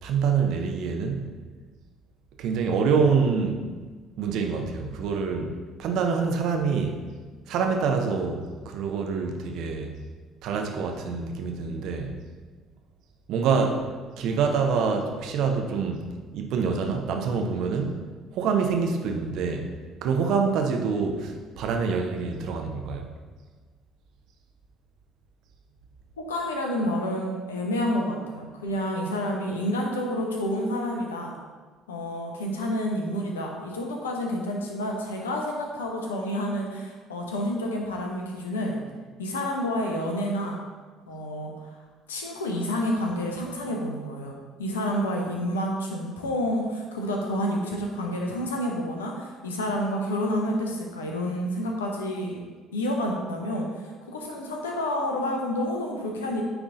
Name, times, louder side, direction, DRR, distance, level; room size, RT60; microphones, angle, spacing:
voice 1, 0.0-1.3 2.4-3.7 4.2-5.5 5.8-7.0 7.5-10.0 10.4-12.1 13.3-13.8 14.2-16.1 16.3-18.0 18.3-19.7 20.0-23.1, right 5 dB, 60° right, 4 dB, 0.8 m, -26 dB
voice 2, 26.3-31.3 31.9-38.8 39.2-40.6 41.1-41.5 42.1-44.3 44.6-52.4 52.7-56.4, equal, 80° left, 0 dB, 0.9 m, -29 dB
9.1 x 3.6 x 3.9 m, 1.4 s
figure-of-eight pair, 55°, 0 cm